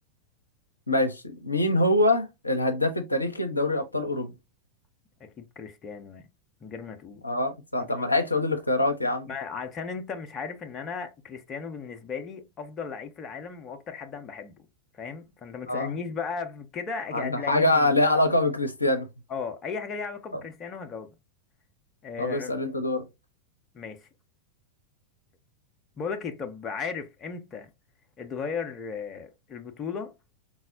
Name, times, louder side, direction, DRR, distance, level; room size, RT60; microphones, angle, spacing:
voice 1, 0.9-4.3 7.2-9.3 15.7-16.0 17.1-19.1 22.2-23.1, left 1 dB, 85° left, 0.5 m, -24 dB
voice 2, 5.2-6.3 6.6-7.2 7.8-8.0 9.3-14.5 14.9-17.9 19.3-21.1 22.0-22.6 23.7-24.1 26.0-27.7 28.2-30.1, left 5 dB, 25° left, 0.5 m, -36 dB
4.0 x 2.0 x 2.4 m
figure-of-eight pair, 90°, 0 cm